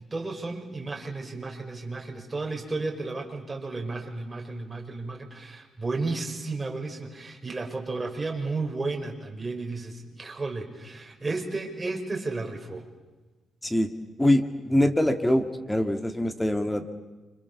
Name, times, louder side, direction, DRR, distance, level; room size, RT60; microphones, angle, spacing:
voice 1, 0.0-12.8, right 3 dB, 20° right, 1 dB, 5.7 m, -33 dB
voice 2, 14.2-16.9, left 1 dB, 10° left, 8 dB, 2.0 m, -24 dB
29.5 x 26.5 x 7.1 m, 1.2 s
cardioid pair, 105°, 0 cm